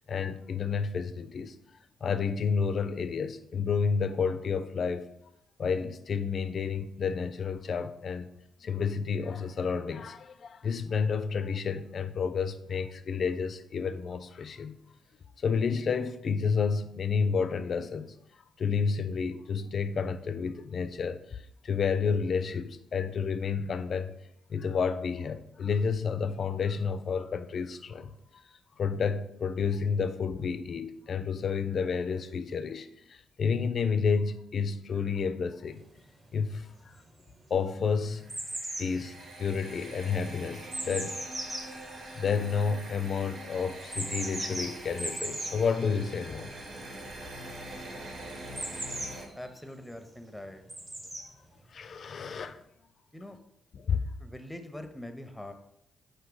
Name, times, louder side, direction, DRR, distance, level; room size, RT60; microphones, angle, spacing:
voice 1, 0.1-1.6 2.0-5.1 5.6-8.3 8.6-14.8 15.4-18.1 18.6-24.2 24.5-28.4 28.8-35.8 36.3-36.9 37.5-38.2 38.8-41.2 42.2-46.5 51.7-52.6 53.7-54.1, left 5 dB, 55° left, 0.3 m, -30 dB
sound 1, 36.0-36.1 36.7-37.3 37.6-42.9 43.8-45.6 48.6-49.6 50.7-51.3 52.2-52.3, right 1 dB, 30° right, 1.0 m, -37 dB
sound 2, 38.0-49.3, right 1 dB, 60° right, 1.1 m, -44 dB
voice 2, 49.3-50.6 53.1-53.4 54.2-55.5, left 1 dB, 5° left, 0.6 m, -43 dB
4.8 x 2.7 x 3.8 m
hypercardioid pair, 40°, 0 cm